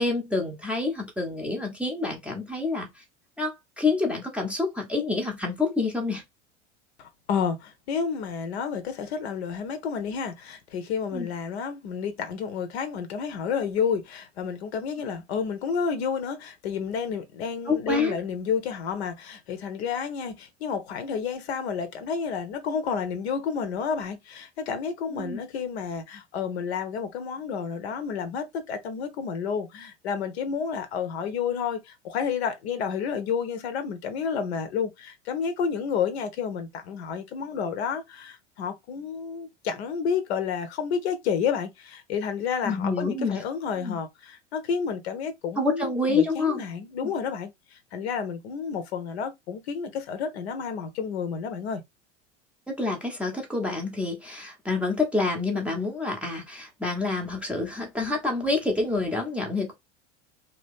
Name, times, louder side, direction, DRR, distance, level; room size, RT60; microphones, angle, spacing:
voice 1, 0.0-2.9 3.4-6.2 11.1-11.3 17.7-18.1 25.1-25.4 42.6-43.4 43.8-44.0 45.6-46.6 47.0-47.1 52.7-59.8, left 3 dB, 5° right, 0.7 m, -27 dB
voice 2, 7.0-51.8, left 6 dB, 55° left, 0.8 m, -30 dB
2.8 x 2.4 x 3.4 m
figure-of-eight pair, 80°, 38 cm